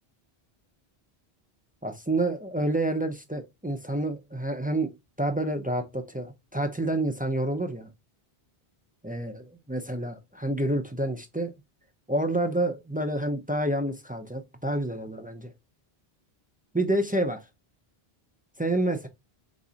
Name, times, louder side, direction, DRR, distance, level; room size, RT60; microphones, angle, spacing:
voice 1, 1.8-4.9 5.2-7.9 9.0-11.5 12.1-15.5 16.7-17.4 18.6-19.1, right 1 dB, 15° right, 0.3 m, -28 dB
4.0 x 2.5 x 3.8 m
omnidirectional pair, 1.0 m